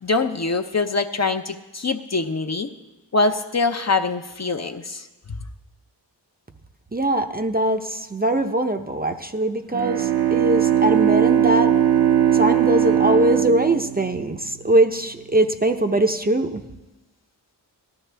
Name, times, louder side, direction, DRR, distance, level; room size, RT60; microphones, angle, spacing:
voice 1, 0.0-2.7 3.1-5.1, left 3 dB, 35° left, 6 dB, 0.7 m, -23 dB
voice 2, 6.9-11.7 12.3-16.6, right 1 dB, 20° right, 5 dB, 0.7 m, -21 dB
Bowed string instrument, 9.7-14.9, right 10 dB, 60° right, 0.7 m, -19 dB
18.0 x 13.0 x 3.4 m, 1.1 s
wide cardioid pair, 65°, 44 cm